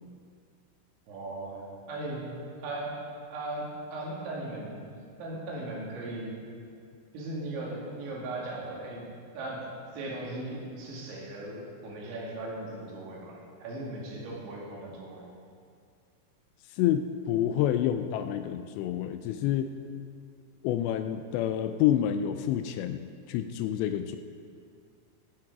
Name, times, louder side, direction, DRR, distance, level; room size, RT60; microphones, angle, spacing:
voice 1, 1.1-2.3 2.6-3.0 3.3-4.8 5.2-6.4 7.1-9.0 9.3-9.7 9.9-15.3, right 2 dB, 80° right, -4 dB, 4.8 m, -38 dB
voice 2, 16.7-19.7 20.6-24.2, left 11 dB, 85° left, 9 dB, 2.6 m, -28 dB
13.5 x 13.5 x 4.7 m, 2.2 s
omnidirectional pair, 5.3 m